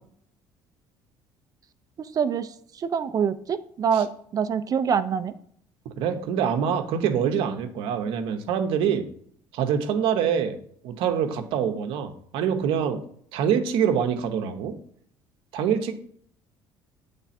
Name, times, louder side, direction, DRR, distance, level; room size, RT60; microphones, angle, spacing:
voice 1, 2.0-5.3, right 7 dB, 40° right, 12 dB, 0.5 m, -26 dB
voice 2, 6.0-9.0 9.5-10.6 10.8-13.0 13.3-14.7 15.5-15.9, right 8 dB, 75° right, 7 dB, 0.8 m, -25 dB
8.1 x 3.4 x 4.2 m, 0.63 s
supercardioid pair, 95°, 9 cm